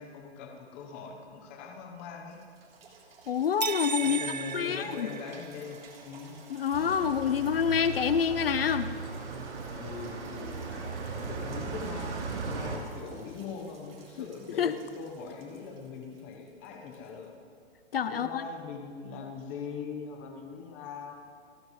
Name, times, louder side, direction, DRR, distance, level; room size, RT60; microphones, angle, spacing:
voice 1, 0.0-2.4 4.0-6.4 9.7-17.3 18.1-21.1, left 5 dB, 10° left, 1 dB, 1.0 m, -41 dB
sound 1, 2.2-18.0 18.6-18.7, right 4 dB, 60° right, 3.6 m, -55 dB
voice 2, 3.3-4.2 4.5-5.1 6.5-8.9 14.6-14.7 17.9-18.4, left 7 dB, 60° left, 12 dB, 0.7 m, -27 dB
sound 2, 3.6-5.8, right 7 dB, 40° right, 0.4 m, -35 dB
sound 3, 6.7-12.8, right 4 dB, 90° right, 3.4 m, -37 dB
30.0 x 15.0 x 3.2 m, 2.2 s
hypercardioid pair, 180°, 33 cm